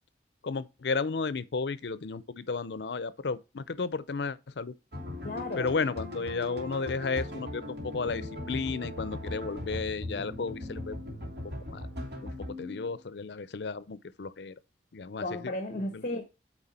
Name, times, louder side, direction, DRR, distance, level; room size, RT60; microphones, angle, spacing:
voice 1, 0.4-4.7 5.6-11.0 11.7-11.9 12.2-12.3 12.6-14.5 14.9-15.5 15.8-16.0, left 4 dB, 75° left, 0.6 m, -33 dB
sound 1, 4.9-13.0, left 1 dB, 70° right, 2.9 m, -39 dB
voice 2, 5.2-5.7 15.2-16.3, left 1 dB, 45° left, 1.0 m, -34 dB
9.0 x 4.0 x 4.2 m
head